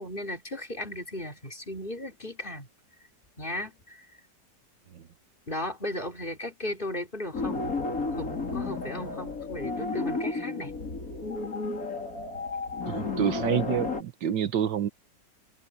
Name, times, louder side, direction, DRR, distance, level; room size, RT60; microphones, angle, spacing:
voice 1, 0.0-2.7 3.4-4.1 5.5-7.6 8.2-10.7, left 1 dB, 25° left, 3.6 m, -36 dB
sound 1, 7.3-14.0, left 3 dB, 50° left, 3.3 m, -32 dB
voice 2, 12.9-14.9, right 9 dB, 80° right, 1.8 m, -28 dB
omnidirectional pair, 1.9 m